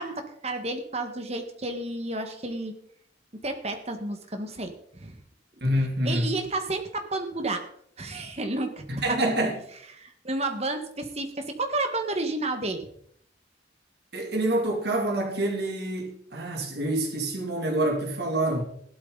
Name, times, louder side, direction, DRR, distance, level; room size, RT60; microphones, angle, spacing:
voice 1, 0.0-2.8 3.4-5.2 6.1-7.7 8.0-9.5 9.9-12.9, right 2 dB, 35° right, 6 dB, 1.8 m, -31 dB
voice 2, 5.6-6.3 8.9-9.5 14.1-18.6, right 1 dB, 60° right, 0 dB, 2.9 m, -27 dB
16.5 x 12.0 x 4.1 m, 0.67 s
head